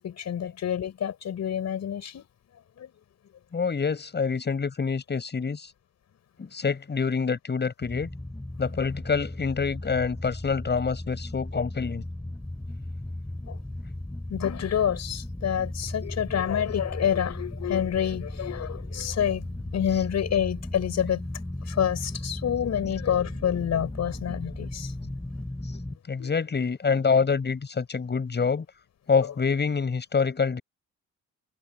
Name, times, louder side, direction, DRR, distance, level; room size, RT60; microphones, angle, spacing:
voice 1, 0.0-2.3 2.8-2.9 13.5-13.6 14.3-19.5 19.7-21.3 21.7-24.9 26.2-26.3, left 9 dB, 60° left, 6.0 m, -28 dB
voice 2, 3.5-5.7 6.4-8.1 8.6-12.0 19.9-20.0 26.1-28.7 29.1-30.6, left 5 dB, 35° left, 7.6 m, -26 dB
sound 1, 7.8-26.0, left 1 dB, 10° left, 7.5 m, -36 dB
cardioid pair, 90°, 30 cm